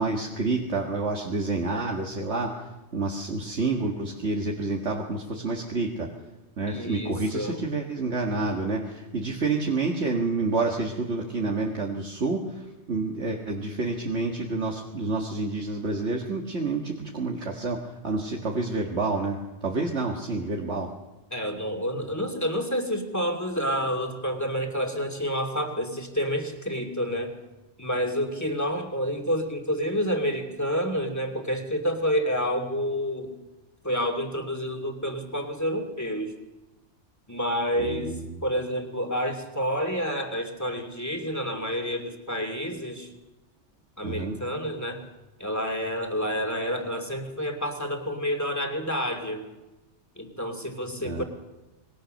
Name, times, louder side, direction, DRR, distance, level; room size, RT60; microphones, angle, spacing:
voice 1, 0.0-6.1 6.6-20.9 37.8-38.4 44.0-44.4 51.0-51.2, right 3 dB, 70° right, 0 dB, 2.1 m, -29 dB
voice 2, 6.7-7.6 21.3-27.3 27.8-33.3 33.8-36.4 37.3-43.1 44.0-45.0 45.4-49.4 50.2-51.2, equal, 15° left, 3 dB, 2.6 m, -29 dB
26.0 x 21.5 x 6.5 m, 1.1 s
omnidirectional pair, 1.2 m